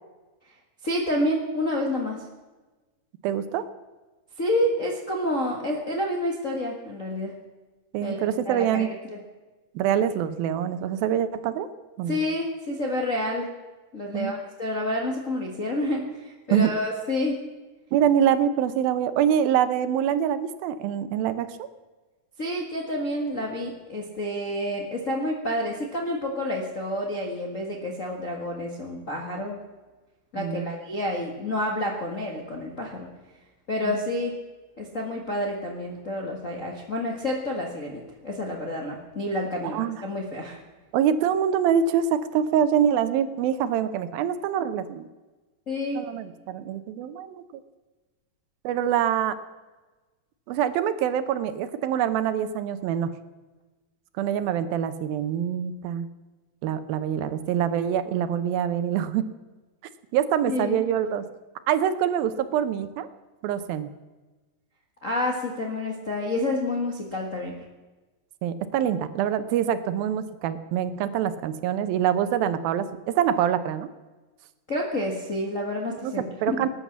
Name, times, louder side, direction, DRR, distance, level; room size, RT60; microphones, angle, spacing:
voice 1, 0.8-2.2 4.4-7.3 8.0-9.2 12.1-13.5 13.9-17.4 22.4-29.6 30.3-33.1 33.7-34.4 34.8-40.6 45.7-46.1 60.5-60.9 65.0-67.6 74.7-76.7, left 1 dB, 45° left, -1 dB, 0.9 m, -29 dB
voice 2, 3.2-3.6 7.9-8.9 9.8-11.7 12.0-12.2 14.1-14.3 16.5-16.7 17.9-21.5 30.4-30.7 33.9-34.0 39.7-40.0 40.9-45.1 46.0-47.4 48.6-49.4 50.5-53.1 54.2-56.1 56.6-59.3 60.1-61.2 61.7-63.1 63.4-63.9 68.4-73.9 76.0-76.1 76.4-76.7, right 9 dB, 80° right, 12 dB, 2.7 m, -25 dB
19.0 x 9.9 x 7.2 m, 1.2 s
omnidirectional pair, 4.2 m